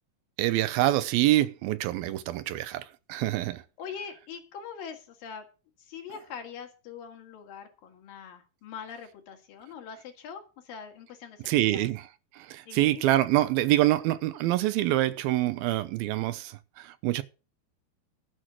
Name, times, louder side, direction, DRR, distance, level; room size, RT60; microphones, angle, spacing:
voice 1, 0.4-3.6 11.5-12.1 12.3-17.2, right 15 dB, 80° right, 2.4 m, -26 dB
voice 2, 3.8-5.4 5.8-11.9 12.7-13.0, left 7 dB, 65° left, 3.5 m, -43 dB
12.5 x 6.3 x 7.4 m
omnidirectional pair, 4.4 m